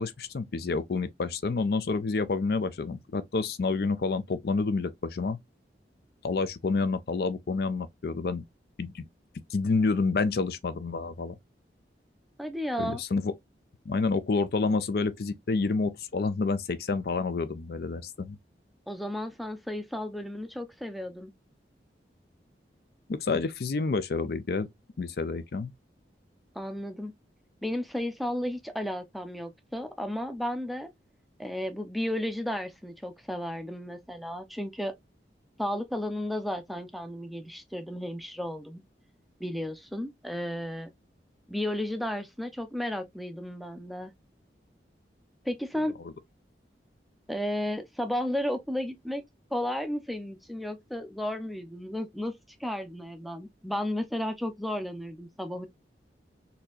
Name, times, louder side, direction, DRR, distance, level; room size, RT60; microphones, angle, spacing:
voice 1, 0.0-5.4 6.2-8.4 8.8-9.1 9.5-11.3 12.8-13.3 13.9-18.4 23.1-24.7 25.0-25.7, left 4 dB, 60° left, 0.4 m, -29 dB
voice 2, 12.4-13.0 18.9-21.3 26.5-27.1 27.6-30.9 31.4-34.9 35.6-38.8 39.4-40.9 41.5-44.1 45.4-45.9 47.3-49.2 49.5-55.7, left 1 dB, ahead, 0.5 m, -33 dB
4.2 x 2.8 x 2.4 m
head